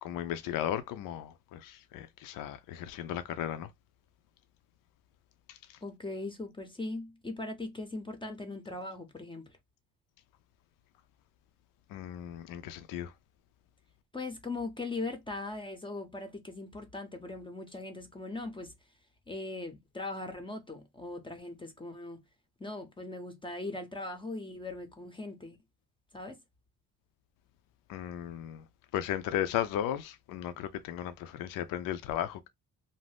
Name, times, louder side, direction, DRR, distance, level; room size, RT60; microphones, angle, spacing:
voice 1, 0.0-3.7 5.5-5.8 11.9-13.1 27.9-28.6 28.9-32.5, left 11 dB, 70° left, 0.5 m, -35 dB
voice 2, 5.8-9.6 14.1-18.7 19.3-22.2 22.6-25.6 26.1-26.4, left 2 dB, 15° left, 0.6 m, -40 dB
2.6 x 2.0 x 3.3 m
cardioid pair, 100°, 34 cm